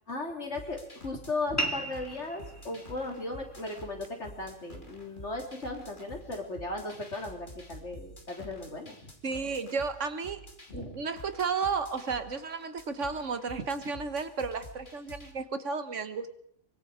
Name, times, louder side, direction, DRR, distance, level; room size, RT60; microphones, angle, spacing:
voice 1, 0.1-9.1 10.7-11.0, left 2 dB, 55° left, 2 dB, 3.8 m, -37 dB
sound 1, 0.5-15.3, left 1 dB, 35° left, 3.0 m, -49 dB
sound 2, 1.6-6.6, right 1 dB, 10° left, 2.1 m, -40 dB
voice 2, 9.2-10.4 10.7-16.3, right 5 dB, 60° right, 11 dB, 1.6 m, -33 dB
24.5 x 23.5 x 5.0 m, 0.69 s
omnidirectional pair, 1.4 m